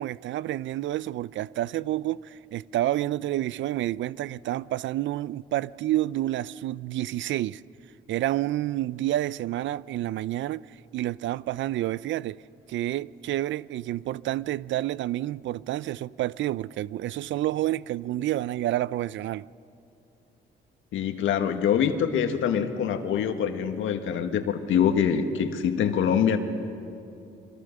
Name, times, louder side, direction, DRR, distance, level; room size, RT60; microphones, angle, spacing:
voice 1, 0.0-7.6 8.1-10.6 10.9-12.4 12.7-19.5, right 14 dB, 70° right, 0.5 m, -29 dB
voice 2, 20.9-26.4, left 8 dB, 80° left, 1.8 m, -24 dB
26.5 x 24.0 x 6.7 m
cardioid pair, 90°, 20 cm